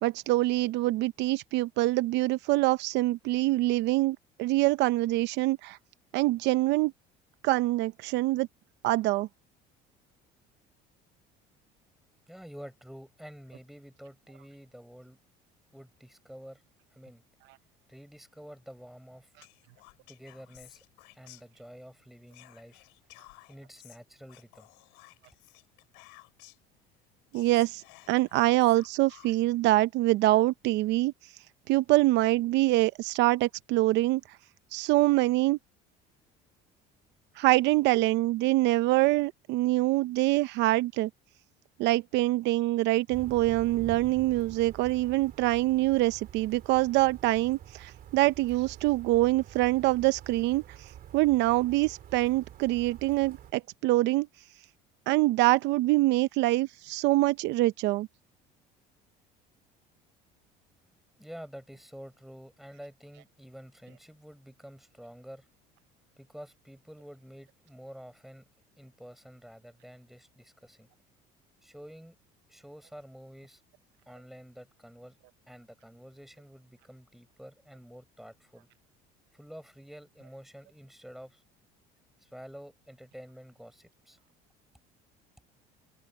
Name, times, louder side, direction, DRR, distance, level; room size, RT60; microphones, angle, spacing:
voice 1, 0.0-5.8 6.1-6.9 7.4-8.5 8.8-9.3 27.3-31.1 31.7-34.2 34.7-35.6 37.4-41.1 41.8-50.6 51.1-54.3 55.1-58.1, right 18 dB, 70° right, 0.7 m, -25 dB
voice 2, 12.3-15.2 15.7-16.6 16.9-17.2 17.9-19.3 20.1-20.8 21.1-22.9 23.5-24.7 61.2-65.5 66.2-68.5 68.8-70.9 71.6-72.2 72.5-73.6 74.1-75.2 75.5-78.7 79.3-81.4 82.2-84.2, equal, ahead, 5.5 m, -49 dB
Whispering, 19.4-21.9 22.3-26.7 27.1-27.2 27.3-29.6, left 30 dB, 85° left, 7.2 m, -56 dB
sound 1, 43.1-53.5, right 10 dB, 50° right, 2.8 m, -47 dB
supercardioid pair, 100°, 19 cm